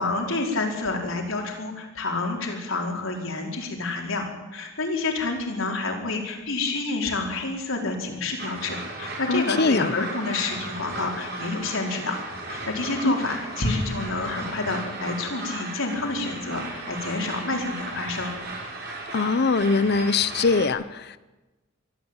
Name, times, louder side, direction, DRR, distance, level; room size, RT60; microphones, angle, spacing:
voice 1, 0.0-4.2 4.5-12.2 12.5-18.3, left 3 dB, 75° left, 1 dB, 4.6 m, -28 dB
sound 1, 8.4-20.7, right 2 dB, 55° right, 5.8 m, -36 dB
voice 2, 9.3-10.0 13.0-13.1 19.1-21.2, left 4 dB, 55° left, 16 dB, 0.7 m, -22 dB
23.0 x 14.0 x 8.9 m, 1.1 s
head